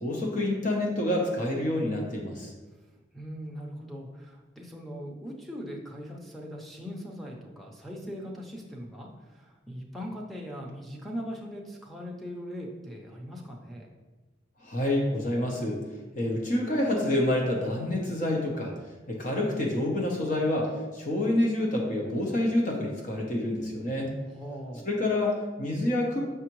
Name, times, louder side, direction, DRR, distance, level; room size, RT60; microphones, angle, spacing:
voice 1, 0.0-2.5 14.6-15.8 16.1-18.7 19.1-24.1 24.8-26.2, left 1 dB, 45° left, -1 dB, 0.9 m, -27 dB
voice 2, 3.1-13.9 24.3-24.8, equal, ahead, -3 dB, 0.7 m, -40 dB
6.7 x 4.8 x 3.1 m, 1.2 s
head